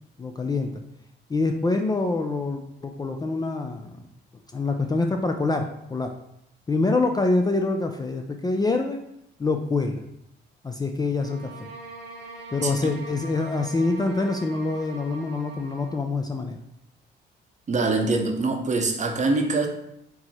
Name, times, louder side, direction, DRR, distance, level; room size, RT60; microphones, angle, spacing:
voice 1, 0.2-0.8 1.3-4.0 4.5-5.7 5.9-6.1 6.7-9.0 9.4-10.0 10.6-11.7 12.5-16.6, left 3 dB, 20° left, 4 dB, 0.3 m, -25 dB
sound 1, 11.2-16.0, right 3 dB, 60° right, 1.0 m, -42 dB
voice 2, 17.7-19.7, right 3 dB, 35° right, 4 dB, 0.7 m, -24 dB
4.5 x 2.0 x 4.1 m, 0.77 s
cardioid pair, 90°, 20 cm